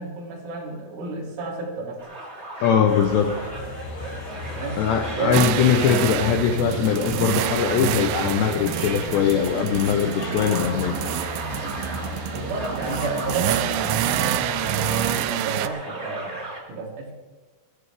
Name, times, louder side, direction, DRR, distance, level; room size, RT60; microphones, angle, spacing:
voice 1, 0.0-2.0 4.5-4.8 5.1-5.5 12.0-17.1, right 3 dB, 70° right, -3 dB, 5.3 m, -31 dB
sound 1, 2.0-16.6, right 2 dB, 55° right, 0.7 m, -37 dB
voice 2, 2.6-3.4 4.8-11.0, left 8 dB, 90° left, 5 dB, 2.5 m, -21 dB
sound 2, 2.9-15.2, left 2 dB, 60° left, 3.5 m, -36 dB
sound 3, 5.3-15.7, right 14 dB, 90° right, 2.7 m, -27 dB
21.5 x 14.0 x 3.5 m, 1.2 s
omnidirectional pair, 6.0 m